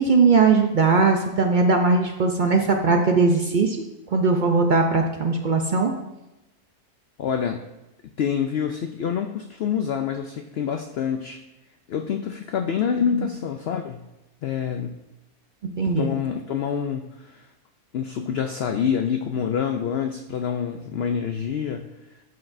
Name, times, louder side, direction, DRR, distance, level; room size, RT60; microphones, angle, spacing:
voice 1, 0.0-3.8 4.1-5.9 13.1-13.3 15.8-16.1, right 4 dB, 75° right, 3 dB, 0.4 m, -19 dB
voice 2, 7.2-7.6 8.2-11.4 11.9-14.0 14.4-15.0 16.0-17.4 17.9-21.9, left 7 dB, 90° left, 5 dB, 0.5 m, -26 dB
12.5 x 6.0 x 2.6 m, 0.98 s
omnidirectional pair, 1.6 m